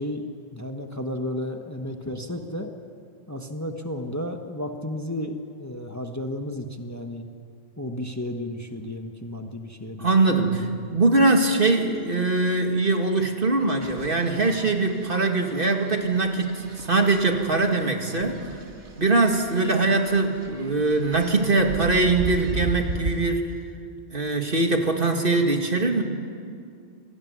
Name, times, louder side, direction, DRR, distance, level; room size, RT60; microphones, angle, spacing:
voice 1, 0.0-2.7 3.3-7.2 7.8-10.5, left 1 dB, 15° left, 4 dB, 1.3 m, -33 dB
voice 2, 10.0-18.4 19.0-23.4 24.1-26.0, right 3 dB, 50° right, 3 dB, 2.4 m, -22 dB
sound 1, 13.8-23.3, right 2 dB, 90° right, 2.1 m, -37 dB
27.5 x 18.5 x 9.5 m, 2.3 s
omnidirectional pair, 1.1 m